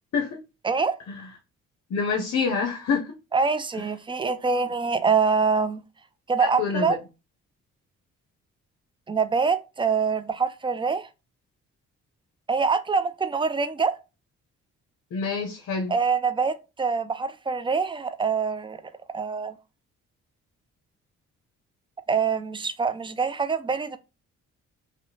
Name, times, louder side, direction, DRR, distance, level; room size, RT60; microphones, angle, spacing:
voice 1, 1.9-3.1 6.4-6.9 15.1-15.9, left 5 dB, 55° left, 0.6 m, -27 dB
voice 2, 3.3-5.8 6.3-7.0 9.1-11.1 12.5-13.9 15.9-18.8 19.1-19.5 22.1-24.0, right 5 dB, 15° right, 0.3 m, -25 dB
2.7 x 2.1 x 2.7 m
supercardioid pair, 55°, 32 cm